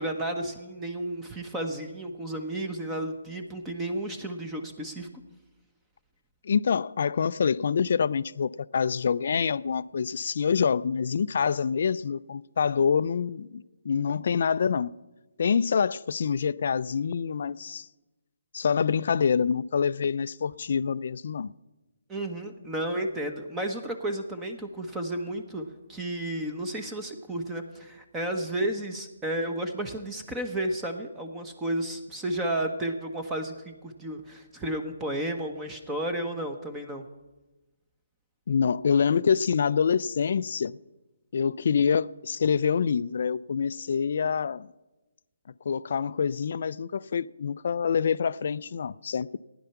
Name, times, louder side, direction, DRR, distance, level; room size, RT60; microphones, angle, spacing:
voice 1, 0.0-5.1 22.1-37.0, right 1 dB, 10° right, 1.0 m, -32 dB
voice 2, 6.4-14.9 15.4-17.9 18.5-21.5 38.5-40.7 41.3-44.7 45.7-49.4, left 6 dB, 55° left, 0.4 m, -26 dB
15.5 x 10.5 x 5.8 m
hypercardioid pair, 155°, 0 cm